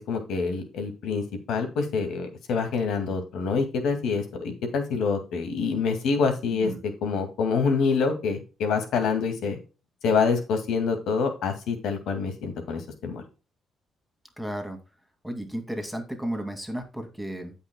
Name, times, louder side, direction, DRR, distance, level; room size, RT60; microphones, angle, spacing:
voice 1, 0.1-9.6 10.0-13.2, left 5 dB, 80° left, 5 dB, 2.2 m, -26 dB
voice 2, 14.4-14.8 15.2-17.5, right 1 dB, ahead, 5 dB, 2.3 m, -33 dB
16.0 x 5.6 x 2.2 m, 0.32 s
cardioid pair, 90°, 0 cm